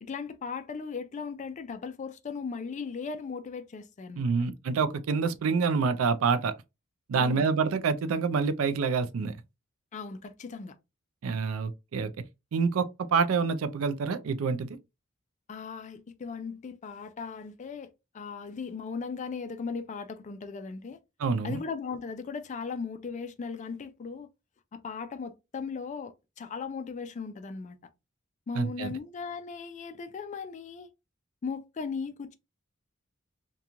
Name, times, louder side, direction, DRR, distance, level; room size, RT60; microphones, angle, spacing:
voice 1, 0.0-4.3 7.2-7.5 9.9-10.7 15.5-21.0 21.4-24.3 24.7-27.8 28.5-30.9 31.4-32.3, left 5 dB, 35° left, 0.3 m, -37 dB
voice 2, 4.2-6.5 7.1-9.3 11.2-12.1 12.5-14.8 21.2-21.6 28.6-28.9, right 5 dB, 80° right, 0.4 m, -27 dB
2.9 x 2.3 x 2.4 m
head